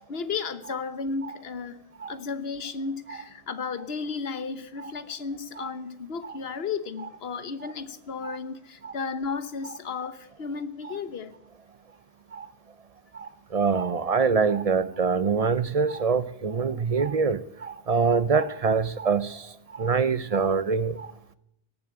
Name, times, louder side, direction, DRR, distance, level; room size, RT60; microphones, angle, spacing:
voice 1, 0.0-1.8 2.1-11.4, left 5 dB, 70° left, 12 dB, 1.3 m, -34 dB
voice 2, 13.1-19.4 19.8-21.1, right 5 dB, 45° right, 15 dB, 0.6 m, -25 dB
18.0 x 7.1 x 8.9 m, 0.82 s
omnidirectional pair, 1.1 m